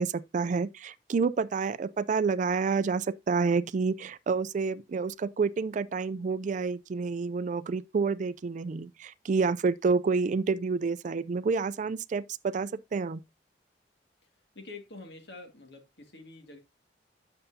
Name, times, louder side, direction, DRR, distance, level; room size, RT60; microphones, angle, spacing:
voice 1, 0.0-13.2, right 4 dB, 45° right, 0.3 m, -29 dB
voice 2, 14.5-16.6, left 3 dB, 65° left, 2.0 m, -46 dB
8.9 x 6.7 x 2.7 m
head